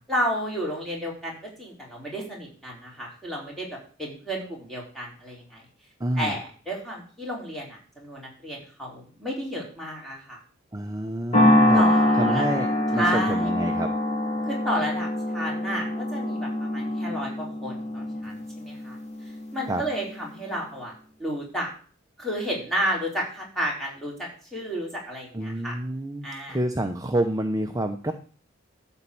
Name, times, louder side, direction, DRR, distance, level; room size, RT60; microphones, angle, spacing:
voice 1, 0.1-5.6 6.2-10.4 11.7-12.5 12.9-13.5 14.4-19.0 19.5-20.9 21.2-21.7 22.2-25.8 26.2-26.6, equal, ahead, -3 dB, 4.2 m, -32 dB
voice 2, 6.0-6.4 10.7-11.8 12.1-13.9 19.7-19.8 25.3-28.1, right 1 dB, 20° right, 5 dB, 0.8 m, -28 dB
sound 1, 11.3-19.8, left 1 dB, 35° left, 2.7 m, -24 dB
12.5 x 4.4 x 8.5 m, 0.41 s
head